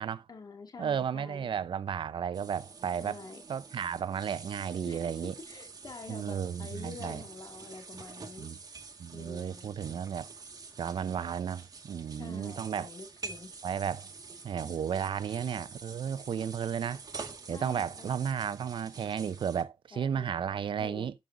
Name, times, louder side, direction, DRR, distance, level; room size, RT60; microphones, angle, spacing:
voice 1, 0.3-1.5 3.0-3.4 4.8-5.0 5.5-8.5 9.1-9.7 12.2-13.5 16.3-16.4 17.5-18.2 19.9-20.3 20.8-21.1, left 4 dB, 50° left, 2.1 m, -47 dB
voice 2, 0.8-3.2 3.5-5.3 6.1-7.2 8.4-8.6 9.0-10.3 10.8-12.9 13.6-14.1 14.4-17.0 17.5-21.1, right 8 dB, 70° right, 0.7 m, -33 dB
sound 1, 2.3-19.6, right 4 dB, 45° right, 1.5 m, -47 dB
11.0 x 5.5 x 3.8 m
cardioid pair, 90°, 9 cm